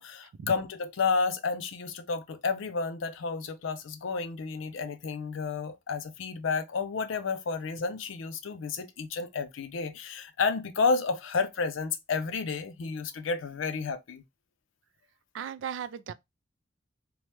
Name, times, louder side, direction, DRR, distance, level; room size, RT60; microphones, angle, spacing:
voice 1, 0.0-14.2, left 4 dB, 85° left, 0.5 m, -31 dB
voice 2, 15.3-16.1, right 7 dB, 70° right, 0.3 m, -36 dB
3.0 x 2.1 x 3.1 m
head